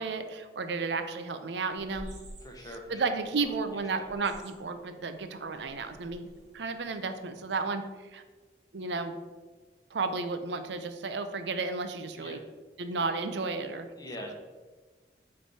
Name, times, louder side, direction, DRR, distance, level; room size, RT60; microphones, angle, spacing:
voice 1, 0.0-2.1 2.9-6.3 6.5-8.2 8.7-9.2 9.9-12.4 12.8-13.9, right 4 dB, 85° right, 9 dB, 0.5 m, -33 dB
sound 1, 1.7-7.6, equal, 40° right, 1.3 m, -52 dB
voice 2, 2.4-3.1 3.4-3.5 3.9-4.0 12.1-12.4 14.0-14.3, left 1 dB, 20° left, 1 dB, 0.9 m, -43 dB
8.7 x 3.3 x 4.1 m, 1.3 s
head